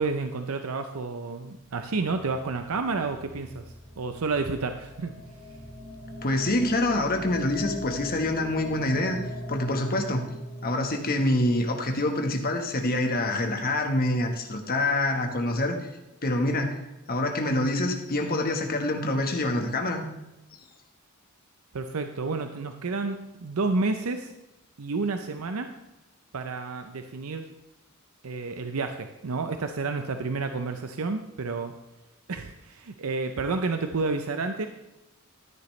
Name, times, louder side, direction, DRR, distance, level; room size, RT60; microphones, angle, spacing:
voice 1, 0.0-5.1 21.7-24.3 24.8-25.7 26.3-27.5 28.2-31.7 32.3-34.7, right 3 dB, 80° right, 7 dB, 0.6 m, -30 dB
sound 1, 1.6-13.8, left 1 dB, 35° right, 4.6 m, -41 dB
voice 2, 6.2-9.2 9.5-10.2 10.6-15.8 16.2-16.8 17.1-20.0, left 1 dB, 45° left, 4 dB, 1.4 m, -26 dB
13.5 x 9.9 x 3.2 m, 0.95 s
head